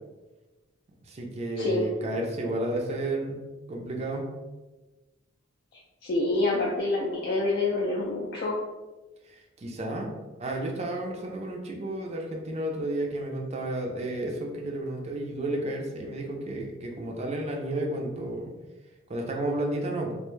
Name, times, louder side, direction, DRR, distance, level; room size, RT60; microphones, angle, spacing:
voice 1, 1.0-4.3 9.2-10.1 10.4-18.5 19.1-20.1, right 1 dB, 35° right, 0 dB, 0.4 m, -32 dB
voice 2, 1.6-1.9 6.0-8.6, left 2 dB, 55° left, -3 dB, 0.3 m, -27 dB
2.1 x 2.0 x 3.0 m, 1.2 s
head